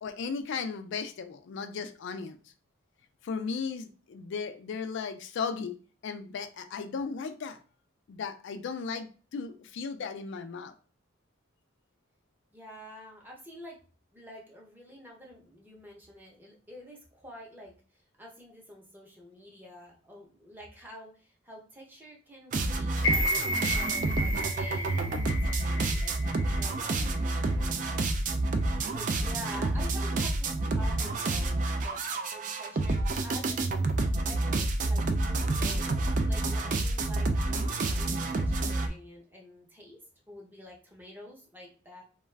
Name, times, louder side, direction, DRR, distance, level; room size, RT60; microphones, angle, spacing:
voice 1, 0.0-2.4 3.2-5.7 6.0-7.6 8.1-10.7, left 5 dB, 60° left, 8 dB, 0.3 m, -36 dB
voice 2, 12.5-13.8 14.1-26.2 26.5-28.0 28.3-28.4 28.9-33.9 34.2-35.9 36.2-37.3 37.6-40.0 40.3-42.0, equal, 10° right, -2 dB, 0.7 m, -48 dB
sound 1, 22.5-38.9, right 2 dB, 40° right, 0.3 m, -29 dB
sound 2, 23.0-27.1 27.5-27.6, left 1 dB, 85° left, 0.8 m, -32 dB
2.4 x 2.3 x 3.2 m, 0.38 s
head